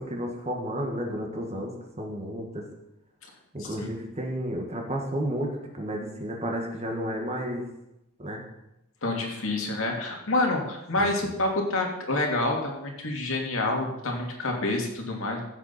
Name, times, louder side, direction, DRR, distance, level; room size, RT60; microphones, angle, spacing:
voice 1, 0.0-2.6 3.5-7.6 8.2-8.4 11.0-11.3, equal, 30° right, 1 dB, 1.6 m, -32 dB
voice 2, 3.6-3.9 9.0-15.4, left 2 dB, 70° left, 1 dB, 2.5 m, -28 dB
15.0 x 8.1 x 4.3 m, 0.90 s
head